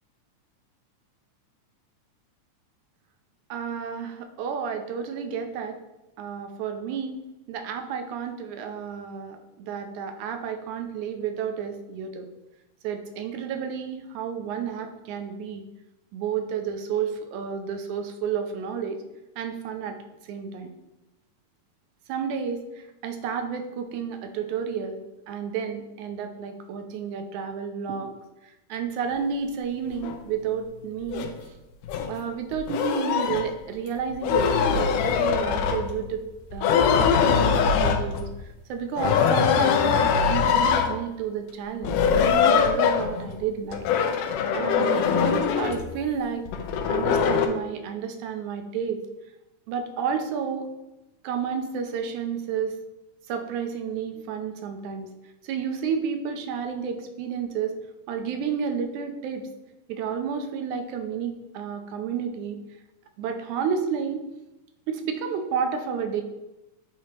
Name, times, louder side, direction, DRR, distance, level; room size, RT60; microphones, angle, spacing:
voice 1, 3.5-5.8 6.2-7.2 7.5-12.3 12.8-15.6 16.1-19.0 19.4-20.0 20.3-20.7 22.1-25.0 25.3-28.1 28.7-31.3 32.1-38.3 38.7-42.0 42.4-43.8 44.5-46.4 46.9-49.0 49.7-50.7 51.2-52.8 53.3-55.1 55.4-57.8 58.1-59.5 59.9-62.6 63.2-64.2 64.9-66.2, right 7 dB, 80° right, 6 dB, 1.9 m, -31 dB
sound 1, 30.0-30.2 31.1-31.3 31.8-32.1 32.5-33.5 34.1-36.1 36.5-38.4 39.0-41.0 41.8-43.3 43.7-45.9 46.5-47.5, left 6 dB, 85° left, 2.2 m, -22 dB
8.4 x 2.8 x 4.4 m, 0.98 s
omnidirectional pair, 3.7 m